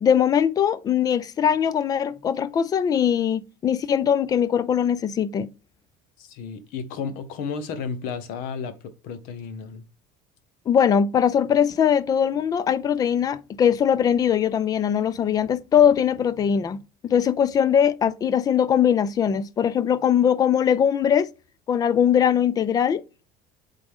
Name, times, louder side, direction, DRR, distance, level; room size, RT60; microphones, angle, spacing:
voice 1, 0.0-5.5 10.7-16.8 17.0-21.3 21.7-23.0, left 8 dB, 25° left, 0.4 m, -21 dB
voice 2, 6.2-9.8, left 5 dB, 65° left, 1.2 m, -33 dB
8.0 x 4.0 x 3.6 m
cardioid pair, 165°, 16 cm